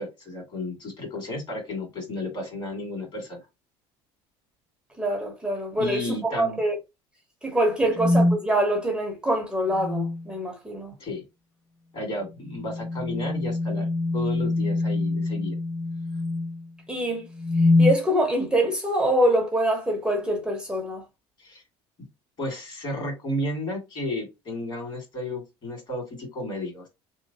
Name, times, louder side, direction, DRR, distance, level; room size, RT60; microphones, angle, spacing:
voice 1, 0.0-3.4 5.7-6.6 7.8-7.9 11.0-11.2 11.9-13.9 14.1-15.5 21.4-21.6 22.4-26.9, left 1 dB, 45° left, 2.0 m, -33 dB
voice 2, 5.0-6.8 7.4-10.9 16.9-17.3 17.8-21.0, right 1 dB, 5° right, 0.8 m, -24 dB
sound 1, 8.0-8.4 9.7-10.3 12.5-16.6 17.3-18.0, left 2 dB, 15° left, 0.3 m, -24 dB
3.1 x 3.0 x 2.7 m
cardioid pair, 120°, 12 cm